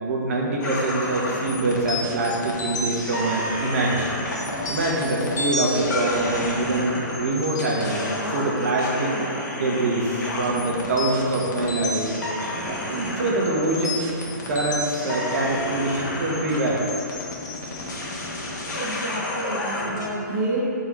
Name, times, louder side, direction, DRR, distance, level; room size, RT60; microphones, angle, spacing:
voice 1, 0.0-9.2 9.5-12.1 12.7-14.0 14.5-16.8, right 2 dB, 45° right, -2 dB, 1.2 m, -25 dB
sound 1, 0.6-20.1, left 1 dB, 60° left, 1.4 m, -30 dB
voice 2, 18.7-20.6, right 2 dB, 15° right, -9 dB, 0.8 m, -29 dB
11.5 x 3.9 x 3.1 m, 2.7 s
hypercardioid pair, 170°, 11 cm